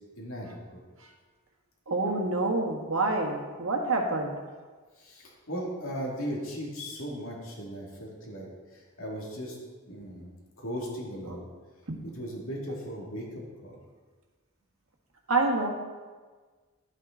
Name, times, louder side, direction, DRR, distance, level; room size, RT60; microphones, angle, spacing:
voice 1, 0.2-0.8 5.0-9.6 9.9-10.3 10.6-11.5 12.0-13.8, equal, 75° left, -2 dB, 2.3 m, -37 dB
voice 2, 1.9-4.3 11.3-11.4 15.3-15.7, right 2 dB, 75° right, 1 dB, 1.5 m, -27 dB
11.5 x 8.3 x 3.8 m, 1.4 s
head